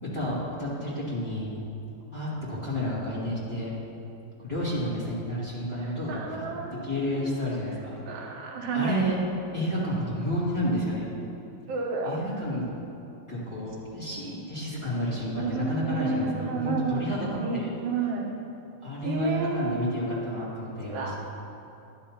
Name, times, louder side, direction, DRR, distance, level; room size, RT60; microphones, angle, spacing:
voice 1, 0.0-1.5 2.1-3.7 4.4-6.4 6.8-8.3 8.7-9.2 9.5-11.0 12.0-12.6 13.3-17.3 17.5-17.7 18.8-21.1, equal, 15° left, -10 dB, 1.3 m, -30 dB
voice 2, 5.8-7.3 8.1-9.0 11.7-12.2 15.3-18.3 19.0-20.2 20.9-21.1, right 4 dB, 75° right, -1 dB, 2.7 m, -31 dB
11.0 x 10.5 x 2.9 m, 2.8 s
omnidirectional pair, 4.2 m